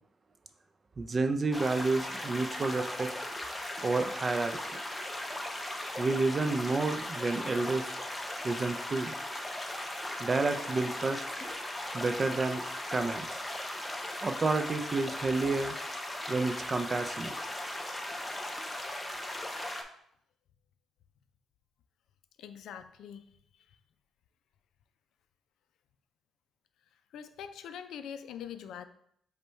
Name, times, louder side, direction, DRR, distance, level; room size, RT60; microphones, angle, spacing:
voice 1, 1.0-3.1 3.8-4.6 6.0-7.9 8.4-9.1 10.2-11.3 11.9-12.6 12.9-13.4 14.2-15.7 16.3-17.4, right 3 dB, 35° right, 7 dB, 0.4 m, -30 dB
sound 1, 1.5-19.8, left 1 dB, 15° left, 0.6 m, -38 dB
voice 2, 22.4-23.2 27.1-28.8, left 8 dB, 75° left, 10 dB, 0.3 m, -43 dB
5.1 x 2.2 x 4.4 m, 0.70 s
cardioid pair, 90°, 0 cm